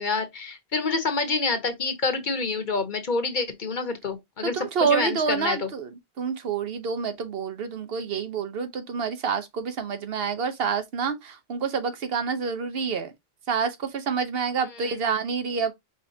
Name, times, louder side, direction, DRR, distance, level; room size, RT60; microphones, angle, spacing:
voice 1, 0.0-5.7, left 4 dB, 50° left, 1.0 m, -27 dB
voice 2, 4.4-5.9 6.2-13.1 13.5-15.7, right 6 dB, 70° right, 1.0 m, -28 dB
5.1 x 3.5 x 2.6 m
omnidirectional pair, 1.0 m